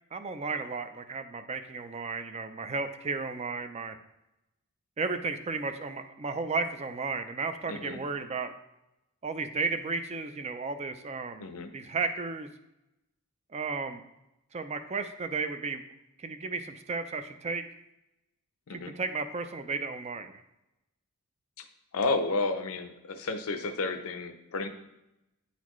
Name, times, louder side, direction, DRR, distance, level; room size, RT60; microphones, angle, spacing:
voice 1, 0.1-4.0 5.0-8.5 9.2-11.5 11.7-12.5 13.5-14.0 14.5-15.8 16.2-17.6 18.7-20.4, right 4 dB, 30° right, 9 dB, 0.4 m, -34 dB
voice 2, 7.7-8.0 11.4-11.7 18.7-18.9 21.6-21.7 21.9-24.7, left 3 dB, 70° left, 8 dB, 0.6 m, -31 dB
9.4 x 4.1 x 3.1 m, 0.91 s
head